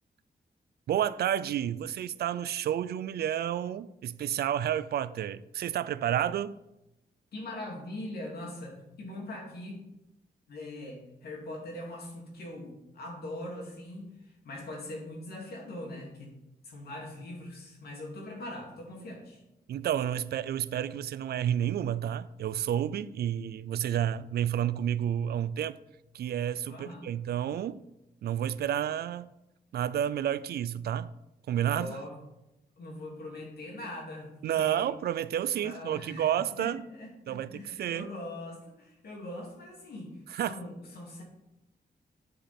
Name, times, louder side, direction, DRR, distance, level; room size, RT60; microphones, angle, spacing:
voice 1, 0.9-6.5 19.7-25.8 26.1-27.8 28.2-29.3 29.7-31.1 31.5-32.0 34.4-36.8 37.3-38.1 40.3-40.6, right 10 dB, 70° right, 16 dB, 0.4 m, -30 dB
voice 2, 7.3-9.8 10.5-16.3 16.6-19.4 26.7-27.1 31.7-32.1 32.8-34.9 35.5-36.3 36.6-40.2 40.5-41.2, left 1 dB, 70° left, -1 dB, 2.5 m, -41 dB
9.8 x 5.1 x 4.3 m, 0.90 s
wide cardioid pair, 145°, 17 cm